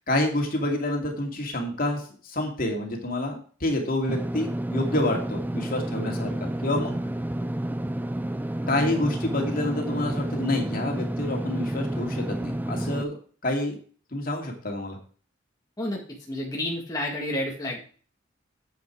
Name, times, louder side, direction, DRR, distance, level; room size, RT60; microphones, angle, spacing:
voice 1, 0.1-7.0 8.7-13.8 14.1-15.0, left 1 dB, 45° left, 2 dB, 2.5 m, -28 dB
Engine / Mechanisms, 4.1-13.0, right 1 dB, 10° right, 0.4 m, -30 dB
voice 2, 16.3-17.9, left 1 dB, 20° left, -2 dB, 1.8 m, -30 dB
9.5 x 8.1 x 4.6 m, 0.42 s
head